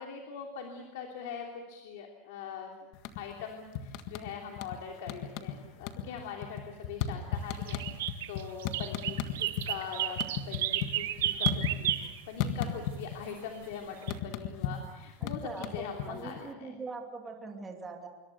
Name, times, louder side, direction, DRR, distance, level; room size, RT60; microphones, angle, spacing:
voice 1, 0.0-2.7 3.2-10.2 10.5-12.0 12.3-16.7, left 7 dB, 65° left, 2 dB, 3.0 m, -42 dB
sound 1, 2.9-3.4 3.7-4.8 5.1-5.6 5.8-9.7 10.0-12.1 12.4-13.3 13.5-16.4, left 9 dB, 45° left, 1.6 m, -34 dB
sound 2, 7.4-12.2 14.0-14.1, right 13 dB, 90° right, 1.5 m, -32 dB
voice 2, 15.2-18.1, right 4 dB, 10° right, 2 dB, 2.8 m, -42 dB
26.0 x 24.0 x 6.8 m, 1.1 s
supercardioid pair, 175°, 0 cm